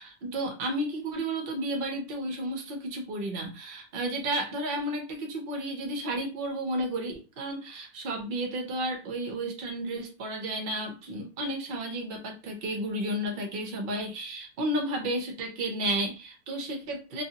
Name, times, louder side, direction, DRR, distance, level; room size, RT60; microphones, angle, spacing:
voice 1, 0.0-17.2, right 1 dB, 50° right, 2 dB, 0.8 m, -32 dB
2.6 x 2.4 x 2.7 m, 0.30 s
omnidirectional pair, 1.5 m